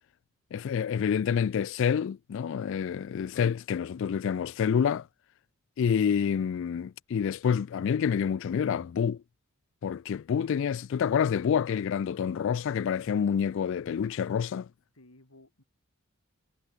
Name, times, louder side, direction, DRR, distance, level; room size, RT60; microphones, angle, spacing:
voice 1, 0.5-5.1 5.8-9.2 9.8-14.7, left 7 dB, 60° left, 0.3 m, -28 dB
voice 2, 6.1-6.4 14.9-15.6, left 1 dB, 85° left, 4.1 m, -56 dB
head